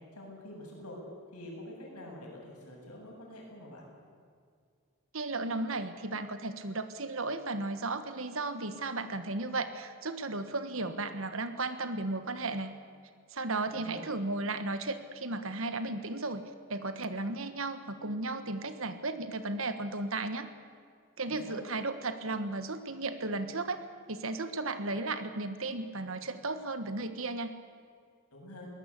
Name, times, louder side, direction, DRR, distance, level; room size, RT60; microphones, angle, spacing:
voice 1, 0.1-1.0 1.3-3.9 13.7-14.1 21.3-21.6 28.3-28.7, left 1 dB, 90° left, -1 dB, 8.0 m, -46 dB
voice 2, 5.1-12.7 13.3-16.4 16.7-20.5 21.2-23.8 24.1-27.5, right 2 dB, 60° right, 10 dB, 1.4 m, -35 dB
22.5 x 19.0 x 8.4 m, 2.2 s
head